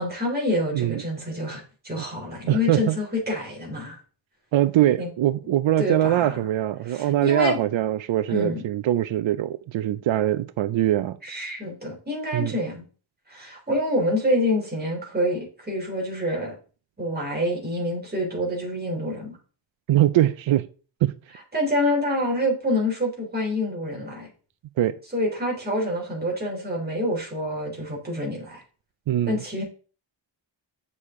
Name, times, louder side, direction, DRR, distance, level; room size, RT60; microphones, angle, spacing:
voice 1, 0.0-4.0 5.0-5.1 5.8-6.4 6.9-7.6 8.3-8.6 11.2-12.8 13.3-16.5 17.0-19.4 21.5-24.3 25.1-28.6 29.3-29.6, left 1 dB, 20° right, 3.4 m, -27 dB
voice 2, 2.5-3.0 4.5-11.2 12.3-12.5 19.9-20.7 21.0-21.1 24.8-25.0 29.1-29.4, right 13 dB, 90° right, 0.6 m, -22 dB
8.5 x 6.5 x 3.7 m
wide cardioid pair, 150°, 45 cm